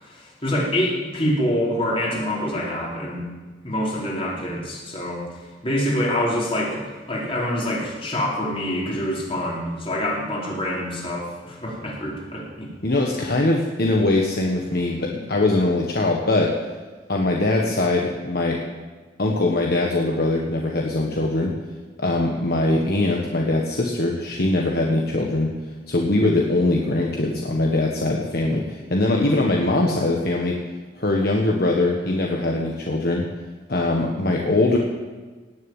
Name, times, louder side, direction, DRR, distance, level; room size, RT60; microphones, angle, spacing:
voice 1, 0.0-3.3 3.6-12.7 29.1-29.5, equal, 30° left, -4 dB, 4.4 m, -26 dB
voice 2, 12.8-16.5 17.1-18.6 19.2-21.5 22.0-25.5 25.9-30.6 31.0-33.2 33.7-34.8, left 2 dB, 60° left, 0 dB, 1.5 m, -22 dB
18.5 x 7.2 x 9.1 m, 1.3 s
head